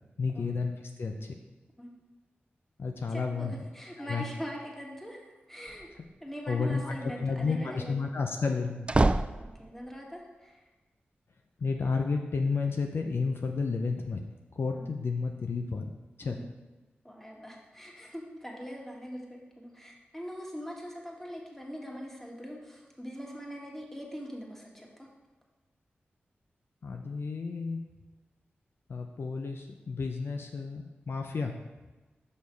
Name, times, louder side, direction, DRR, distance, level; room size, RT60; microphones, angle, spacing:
voice 1, 0.2-1.3 2.8-3.5 4.0-4.2 6.5-8.9 11.6-14.2 14.5-16.4 26.8-27.8 28.9-31.5, left 4 dB, 65° left, 3 dB, 0.5 m, -31 dB
voice 2, 3.1-5.9 6.2-8.1 9.4-10.6 14.7-14.9 16.2-16.5 17.0-25.1, equal, 10° left, -1 dB, 1.8 m, -42 dB
sound 1, 5.7-6.2 8.4-10.0, right 2 dB, 25° right, 0.3 m, -28 dB
6.6 x 5.4 x 4.6 m, 1.2 s
cardioid pair, 45°, 4 cm